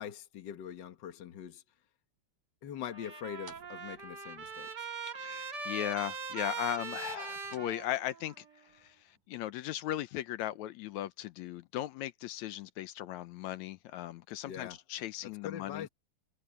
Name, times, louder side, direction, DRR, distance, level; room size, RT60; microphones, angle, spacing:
voice 1, 0.0-1.6 2.6-4.9 14.4-14.8 15.2-15.9, left 9 dB, 55° left, 1.2 m, -43 dB
Trumpet, 2.8-8.4, right 5 dB, 40° right, 2.0 m, -41 dB
sound 1, 3.4-5.2 5.5-5.6 5.8-5.9 6.5-9.5, right 4 dB, 90° right, 8.0 m, -62 dB
voice 2, 5.2-15.9, left 13 dB, 75° left, 1.9 m, -38 dB
omnidirectional pair, 3.5 m